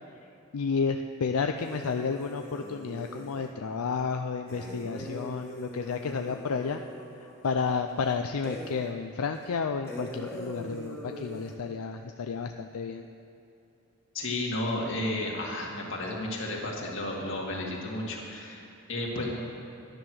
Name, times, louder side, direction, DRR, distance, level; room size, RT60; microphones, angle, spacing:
voice 1, 0.5-6.8 7.2-13.1, left 5 dB, 85° left, 6 dB, 0.5 m, -31 dB
sound 1, 1.6-3.5 4.5-8.0 8.4-9.0 9.3-9.4 9.9-11.6, equal, 10° left, 1.3 m, -42 dB
voice 2, 14.1-19.3, left 1 dB, 55° left, -2 dB, 2.3 m, -33 dB
12.0 x 10.5 x 6.3 m, 2.7 s
head